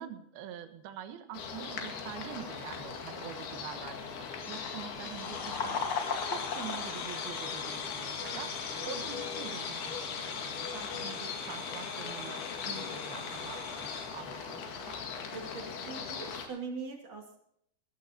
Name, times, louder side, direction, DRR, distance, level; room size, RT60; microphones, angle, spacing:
voice 1, 0.0-12.4 12.9-15.0, right 10 dB, 65° right, 8 dB, 2.9 m, -46 dB
sound 1, 1.3-16.5, left 6 dB, 60° left, 3.7 m, -40 dB
sound 2, 5.0-14.1, left 5 dB, 85° left, 1.2 m, -39 dB
sound 3, 5.8-13.9, equal, 10° left, 4.8 m, -53 dB
voice 2, 12.7-13.4 15.3-17.4, right 4 dB, 40° right, 2 dB, 2.9 m, -43 dB
20.0 x 14.0 x 2.9 m, 0.72 s
omnidirectional pair, 5.4 m